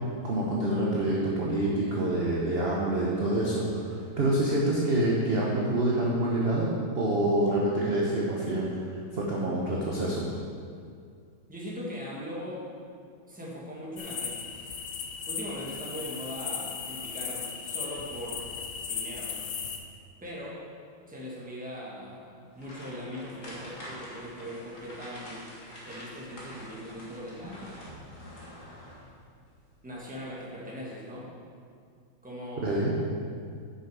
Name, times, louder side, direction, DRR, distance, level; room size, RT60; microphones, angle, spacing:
voice 1, 0.2-10.2 32.6-32.9, right 1 dB, 45° right, -4 dB, 0.8 m, -27 dB
voice 2, 11.5-12.6 13.3-14.5 15.3-19.5 20.2-20.6 21.1-25.5 25.8-28.0 29.8-31.3 32.2-33.1, equal, 5° right, -5 dB, 1.2 m, -40 dB
sound 1, 14.0-19.8, left 6 dB, 65° left, 0.9 m, -36 dB
sound 2, 22.5-29.2 29.5-29.7 30.2-30.3, equal, 40° left, 1.9 m, -46 dB
8.1 x 6.5 x 4.8 m, 2.2 s
omnidirectional pair, 2.2 m